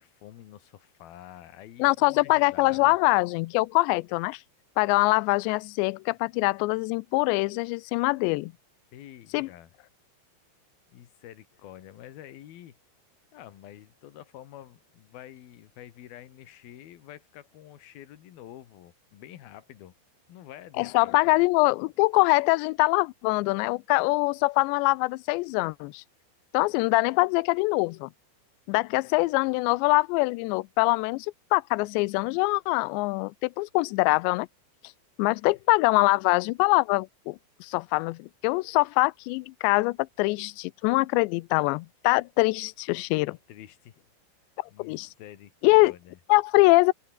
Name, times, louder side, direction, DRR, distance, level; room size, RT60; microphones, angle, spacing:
voice 1, 0.0-3.0 8.9-9.7 10.9-12.8 13.3-19.9 20.3-21.4 43.3-44.1 44.7-46.2, left 12 dB, 60° left, 3.1 m, -48 dB
voice 2, 1.8-4.4 4.8-8.5 9.3-9.5 20.8-26.0 26.5-28.1 28.7-31.3 31.5-34.5 35.2-43.4 44.8-45.1 45.6-45.9 46.3-46.9, left 24 dB, 80° left, 2.7 m, -23 dB
open air
omnidirectional pair, 5.4 m